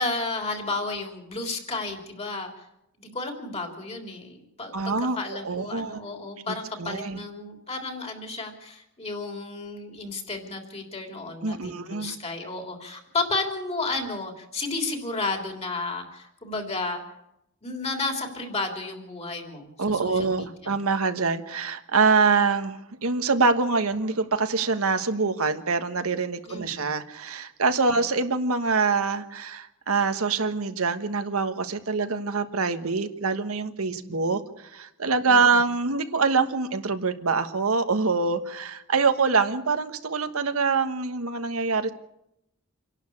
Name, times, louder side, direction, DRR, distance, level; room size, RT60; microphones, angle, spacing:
voice 1, 0.0-2.6 3.0-17.0 17.6-20.7 26.5-26.9 28.0-28.1 33.9-34.3 35.3-35.4, left 3 dB, 30° left, 3 dB, 3.4 m, -32 dB
voice 2, 4.7-6.0 6.5-7.2 11.4-12.1 19.8-41.9, right 4 dB, 85° right, 8 dB, 1.4 m, -25 dB
27.0 x 11.5 x 8.5 m, 0.82 s
head